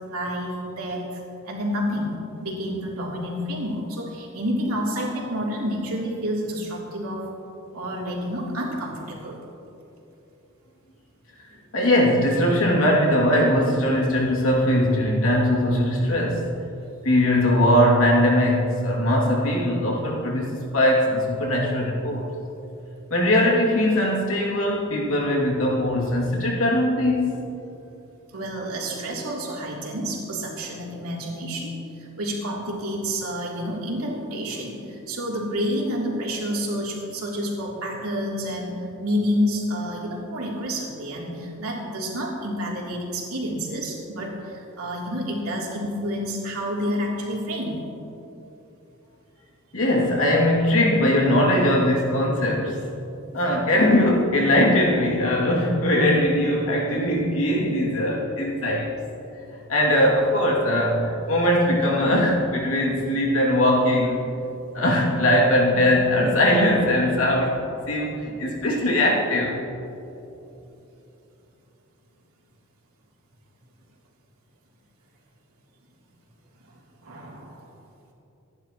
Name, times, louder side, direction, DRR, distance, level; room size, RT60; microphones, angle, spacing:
voice 1, 0.1-1.2 1.5-2.1 2.4-7.3 7.7-9.4 28.3-47.8 77.0-77.6, equal, 90° right, -3 dB, 3.3 m, -29 dB
voice 2, 11.7-16.5 17.0-22.3 23.1-27.5 49.7-52.8 53.3-58.9 59.7-64.2 64.7-67.6 67.9-69.6, left 1 dB, 70° left, -2 dB, 2.6 m, -20 dB
26.5 x 11.0 x 3.1 m, 2.9 s
head